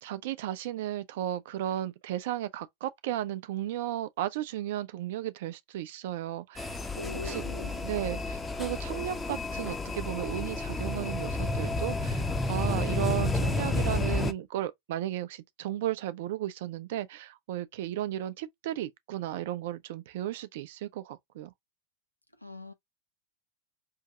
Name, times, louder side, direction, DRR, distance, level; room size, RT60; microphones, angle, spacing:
voice 1, 0.0-6.8 7.2-7.4 7.8-21.5, right 13 dB, 55° right, 0.5 m, -34 dB
sound 1, 6.6-14.3, left 2 dB, 15° left, 0.6 m, -31 dB
voice 2, 6.9-7.8 22.4-22.7, left 3 dB, 90° left, 0.8 m, -41 dB
5.5 x 2.7 x 2.4 m
figure-of-eight pair, 90°, 0 cm